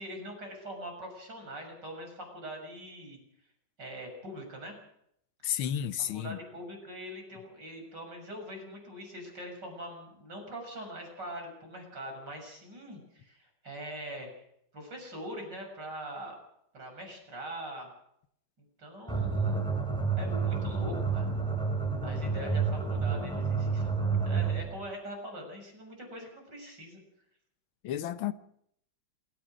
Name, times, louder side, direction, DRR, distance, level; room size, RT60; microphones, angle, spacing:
voice 1, 0.0-3.2 3.8-4.8 6.1-14.4 14.7-16.4 16.7-17.9 18.8-19.7 20.2-21.4 22.0-27.0, equal, 55° right, 7.5 m, -43 dB
voice 2, 5.4-6.4 27.8-28.3, left 10 dB, 85° left, 1.8 m, -32 dB
sound 1, 19.1-24.7, right 4 dB, ahead, 3.0 m, -29 dB
27.5 x 15.0 x 6.3 m
omnidirectional pair, 2.2 m